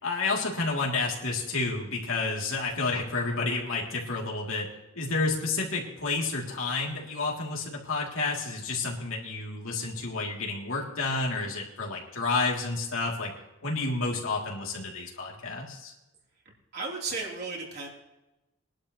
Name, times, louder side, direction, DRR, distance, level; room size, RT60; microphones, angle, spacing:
voice 1, 0.0-4.7 4.9-13.3 13.6-15.9, left 3 dB, 80° left, -2 dB, 3.1 m, -30 dB
voice 2, 16.7-17.9, right 3 dB, 50° right, -3 dB, 3.7 m, -34 dB
23.0 x 11.5 x 3.2 m, 0.98 s
head